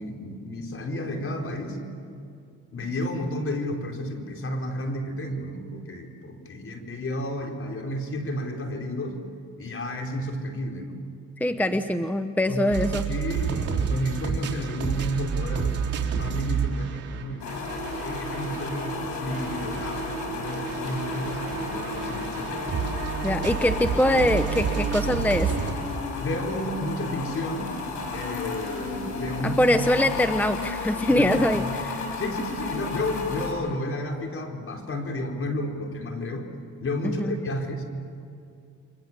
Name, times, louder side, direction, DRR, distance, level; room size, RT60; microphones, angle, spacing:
voice 1, 0.0-1.8 2.7-9.2 9.6-11.0 11.5-11.6 12.5-12.7 13.1-22.7 26.2-27.8 28.1-29.7 31.0-31.8 32.1-36.5 36.8-37.8, left 1 dB, 45° left, 2 dB, 4.6 m, -32 dB
voice 2, 11.4-13.0 23.2-25.5 29.4-32.1 37.0-37.4, left 1 dB, 5° left, 9 dB, 0.9 m, -23 dB
sound 1, 12.7-18.9 19.3-25.7, right 7 dB, 50° right, 3.7 m, -30 dB
sound 2, 17.4-33.5, left 2 dB, 70° left, 6.8 m, -32 dB
30.0 x 24.0 x 7.6 m, 2.5 s
cardioid pair, 90°, 30 cm